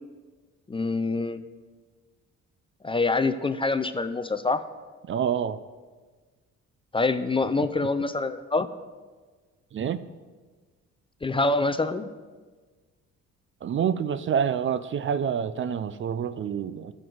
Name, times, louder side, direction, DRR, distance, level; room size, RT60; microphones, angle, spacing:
voice 1, 0.7-1.4 2.8-4.6 6.9-8.7 11.2-12.1, left 3 dB, 20° left, 11 dB, 0.4 m, -25 dB
voice 2, 5.1-5.6 9.7-10.0 13.6-16.9, right 8 dB, 40° right, 14 dB, 0.4 m, -27 dB
14.0 x 6.2 x 3.9 m, 1.4 s
cardioid pair, 90°, 30 cm